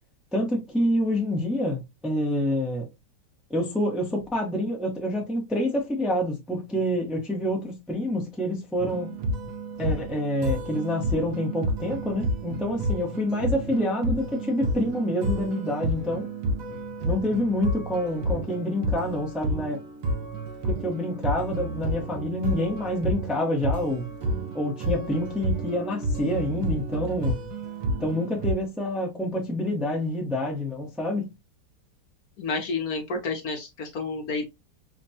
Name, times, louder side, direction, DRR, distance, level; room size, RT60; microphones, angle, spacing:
voice 1, 0.3-2.8 3.5-9.1 9.8-16.3 17.0-19.8 20.7-24.1 24.5-27.4 28.0-31.3, left 1 dB, ahead, 0.7 m, -27 dB
sound 1, 8.8-28.5, right 1 dB, 60° right, 0.9 m, -30 dB
voice 2, 32.4-34.5, left 4 dB, 60° left, 1.2 m, -30 dB
5.0 x 2.2 x 2.7 m
omnidirectional pair, 1.9 m